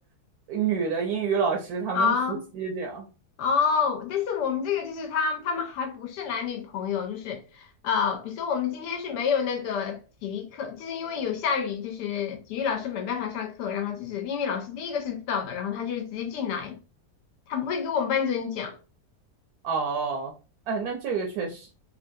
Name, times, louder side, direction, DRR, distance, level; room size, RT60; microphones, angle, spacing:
voice 1, 0.5-2.2 2.6-3.0 19.6-20.3 20.7-21.7, right 6 dB, 75° right, 1.0 m, -28 dB
voice 2, 1.9-2.4 3.4-16.8 17.5-18.8, left 6 dB, 90° left, 1.2 m, -28 dB
3.0 x 2.5 x 2.5 m
omnidirectional pair, 1.7 m